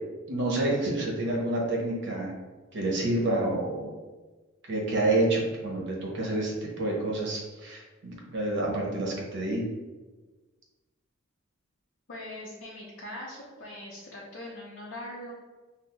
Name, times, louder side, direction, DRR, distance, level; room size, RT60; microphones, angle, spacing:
voice 1, 0.3-2.3 2.7-4.0 4.7-9.7, right 2 dB, 60° right, -2 dB, 0.8 m, -28 dB
voice 2, 12.1-15.3, left 1 dB, 55° left, -5 dB, 0.6 m, -41 dB
5.9 x 2.1 x 2.2 m, 1.3 s
head